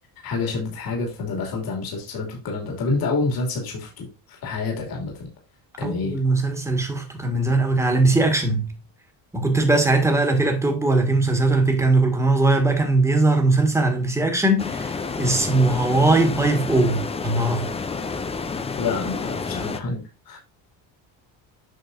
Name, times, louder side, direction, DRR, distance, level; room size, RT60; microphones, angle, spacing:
voice 1, 0.2-5.3 5.8-6.2 18.8-20.4, left 3 dB, 50° left, 2.8 m, -28 dB
voice 2, 5.8-8.7 9.3-17.7, right 2 dB, 5° right, 1.8 m, -20 dB
sound 1, 14.6-19.8, left 4 dB, 15° left, 0.5 m, -30 dB
8.3 x 5.9 x 2.6 m
cardioid pair, 140°, 44 cm